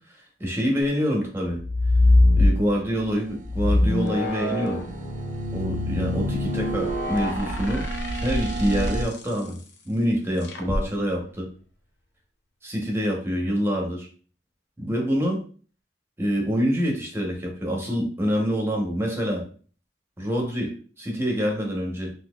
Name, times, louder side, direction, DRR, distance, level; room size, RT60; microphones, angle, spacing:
voice 1, 0.4-1.6 2.4-4.8 5.5-7.8 8.1-9.6 9.8-11.5 12.6-14.1 14.8-15.4 16.2-19.4 20.2-22.1, equal, 15° right, 0 dB, 0.8 m, -26 dB
sound 1, 1.6-3.0 3.4-8.9 10.5-10.8, left 2 dB, 70° left, 0.6 m, -23 dB
sound 2, 3.0-9.0, right 2 dB, 50° right, 0.3 m, -33 dB
3.9 x 2.7 x 2.3 m, 0.41 s
head